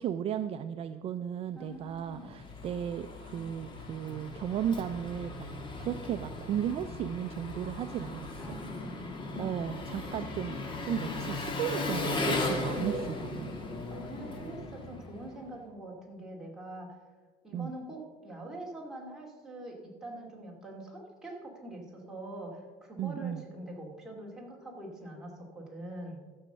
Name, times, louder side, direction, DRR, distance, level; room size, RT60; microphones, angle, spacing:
voice 1, 0.0-8.6 9.3-10.6 10.8-13.5 17.5-17.7 23.0-23.4, right 9 dB, 40° right, 10 dB, 0.4 m, -35 dB
voice 2, 1.6-2.3 8.4-9.6 13.7-17.0 17.4-26.2, right 1 dB, 5° right, -3 dB, 2.4 m, -44 dB
Engine, 1.9-15.5, left 2 dB, 30° left, 1.6 m, -37 dB
13.0 x 6.3 x 6.8 m, 1.4 s
cardioid pair, 155°, 16 cm